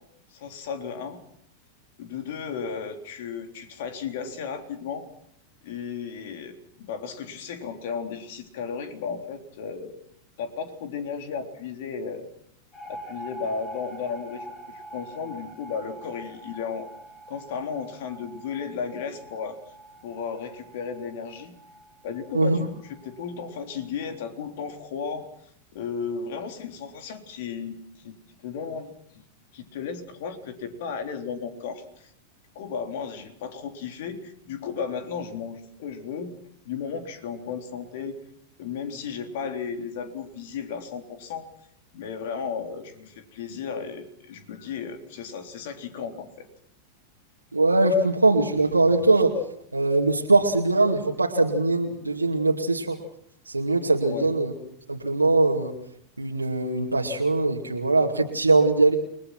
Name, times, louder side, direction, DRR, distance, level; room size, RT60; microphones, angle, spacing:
voice 1, 0.3-1.2 2.0-5.1 5.6-10.0 10.4-12.3 12.9-16.9 17.3-19.6 20.0-21.5 22.0-25.3 25.7-28.1 28.4-28.9 29.5-32.1 32.6-36.3 36.7-38.2 38.6-41.5 41.9-46.5 54.0-54.3, left 6 dB, 55° left, 6 dB, 3.6 m, -34 dB
sound 1, 12.7-23.9, right 1 dB, 25° left, 7.7 m, -45 dB
voice 2, 22.3-22.6 47.5-49.3 49.7-53.0 53.5-54.5 54.9-55.7 56.2-59.0, right 2 dB, 80° right, -1 dB, 2.3 m, -21 dB
29.5 x 21.0 x 6.1 m, 0.71 s
figure-of-eight pair, 90°, 0 cm